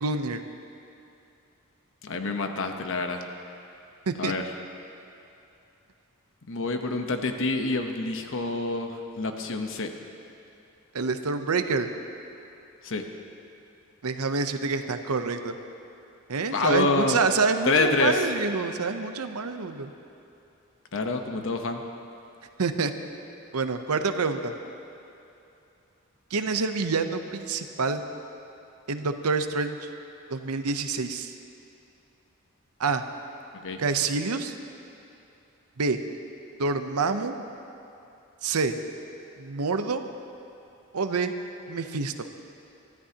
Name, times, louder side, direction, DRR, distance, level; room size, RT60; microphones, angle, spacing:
voice 1, 0.0-0.4 4.1-4.3 10.9-11.9 14.0-15.5 16.3-19.9 22.6-22.9 23.5-24.5 26.3-28.0 28.9-29.8 30.3-31.3 32.8-33.0 33.8-34.5 35.8-36.0 36.6-37.3 38.4-38.7 39.4-40.0 40.9-41.3 41.7-42.3, right 4 dB, 85° right, 8 dB, 0.8 m, -27 dB
voice 2, 2.0-3.2 4.2-4.5 6.5-9.9 12.8-13.0 16.5-17.2 17.6-18.3 20.9-21.8 33.6-33.8, left 3 dB, 60° left, 5 dB, 1.0 m, -27 dB
23.5 x 13.0 x 2.9 m, 2.7 s
head